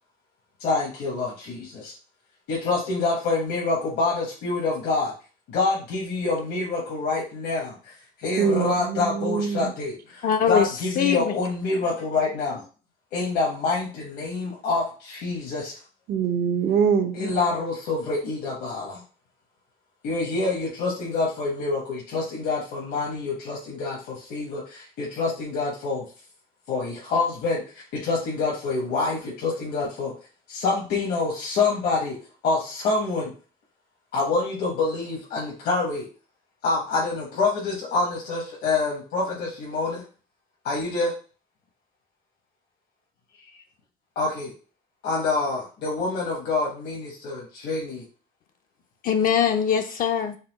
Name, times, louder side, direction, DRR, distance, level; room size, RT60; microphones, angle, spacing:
voice 1, 0.6-1.9 2.5-5.1 5.5-12.6 13.1-15.8 17.1-19.0 20.0-26.1 26.7-30.1 30.5-32.2 32.4-33.3 34.1-36.1 36.6-40.0 40.6-41.1 44.2-44.5 45.0-48.1, left 3 dB, 75° left, 1.1 m, -26 dB
voice 2, 8.4-9.7 16.1-17.2, right 6 dB, 60° right, 0.6 m, -23 dB
voice 3, 10.2-10.7 11.0-11.3 49.0-50.4, left 8 dB, 55° left, 0.5 m, -22 dB
4.0 x 2.2 x 4.0 m
cardioid pair, 110°, 17 cm